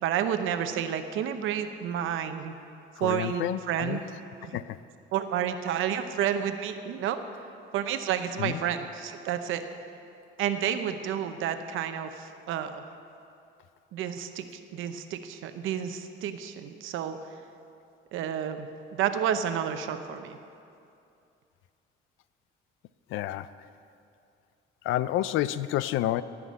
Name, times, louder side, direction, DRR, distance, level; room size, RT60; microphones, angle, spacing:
voice 1, 0.0-2.5 3.0-4.0 4.4-4.6 5.1-7.2 7.7-9.7 10.4-12.8 13.9-14.5 14.7-17.2 18.1-20.4, right 9 dB, 90° right, 8 dB, 0.8 m, -30 dB
voice 2, 3.0-4.0 4.5-4.8 8.4-8.6 23.1-23.5 24.8-26.2, left 13 dB, 90° left, 16 dB, 0.5 m, -29 dB
16.5 x 6.0 x 8.5 m, 2.6 s
cardioid pair, 90°, 20 cm